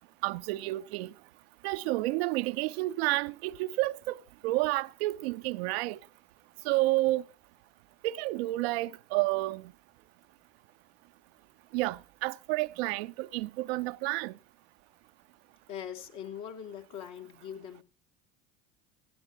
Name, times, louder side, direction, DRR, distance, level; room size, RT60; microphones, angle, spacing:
voice 1, 0.2-1.1 1.6-6.0 6.6-7.2 8.0-9.7 11.7-14.3, right 19 dB, 75° right, 0.7 m, -30 dB
voice 2, 15.7-17.8, left 9 dB, 60° left, 2.9 m, -41 dB
18.0 x 16.5 x 2.9 m
hypercardioid pair, 65°, 31 cm